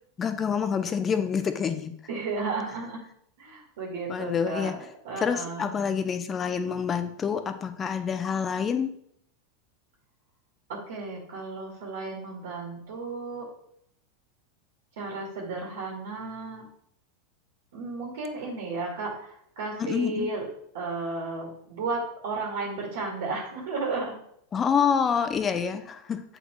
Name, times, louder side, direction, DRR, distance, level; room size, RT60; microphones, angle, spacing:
voice 1, 0.2-1.9 4.1-4.7 5.2-8.9 19.8-20.3 24.5-26.2, left 6 dB, 30° left, 9 dB, 0.7 m, -27 dB
voice 2, 2.1-3.0 3.4-4.8 5.0-5.6 10.7-13.5 15.0-16.6 17.7-20.5 20.7-24.2, right 3 dB, 75° right, -1 dB, 1.9 m, -33 dB
7.7 x 4.3 x 3.1 m, 0.68 s
hypercardioid pair, 100°, 0 cm